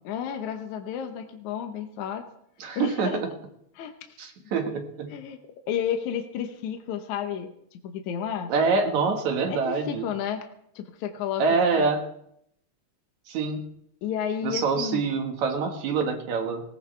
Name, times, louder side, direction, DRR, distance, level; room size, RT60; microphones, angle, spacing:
voice 1, 0.0-2.3 2.8-3.2 3.8-4.2 5.1-5.4 5.7-7.5 7.8-8.5 9.5-10.5 10.8-11.4 11.8-11.9 14.0-15.0, left 8 dB, 75° left, 6 dB, 2.4 m, -31 dB
voice 2, 2.6-3.3 4.2-5.1 8.5-10.1 11.4-12.0 13.3-13.7 14.4-16.6, right 4 dB, 70° right, 4 dB, 2.9 m, -25 dB
20.0 x 18.0 x 3.3 m, 0.72 s
omnidirectional pair, 3.4 m